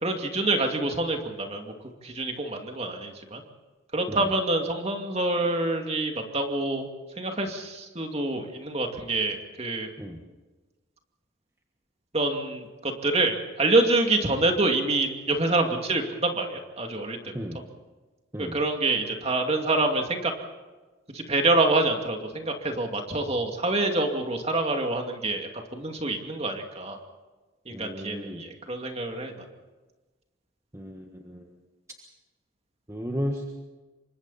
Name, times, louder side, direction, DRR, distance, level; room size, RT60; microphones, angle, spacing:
voice 1, 0.0-1.7 2.0-3.4 3.9-6.9 7.2-9.9 12.1-17.3 18.4-20.3 21.1-27.0 27.7-29.3, right 2 dB, 30° right, 3 dB, 2.5 m, -26 dB
voice 2, 27.7-28.4 30.7-31.4 32.9-33.5, equal, 15° right, 1 dB, 1.5 m, -34 dB
27.5 x 24.5 x 4.3 m, 1.2 s
head